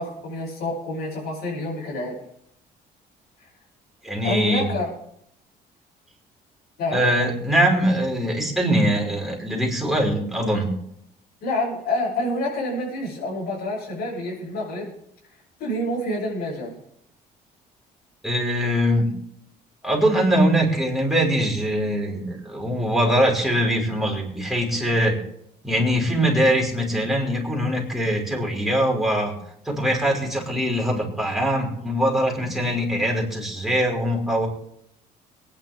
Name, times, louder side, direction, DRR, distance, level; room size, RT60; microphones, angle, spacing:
voice 1, 0.0-2.1 4.2-4.9 6.8-7.0 11.4-14.9 15.6-16.7, left 1 dB, 65° left, -7 dB, 7.8 m, -27 dB
voice 2, 4.0-4.7 6.9-10.7 18.2-19.1 19.8-25.2 25.6-29.3 29.7-34.5, equal, ahead, -2 dB, 5.6 m, -22 dB
23.5 x 10.5 x 3.7 m, 0.74 s
cardioid pair, 110°, 17 cm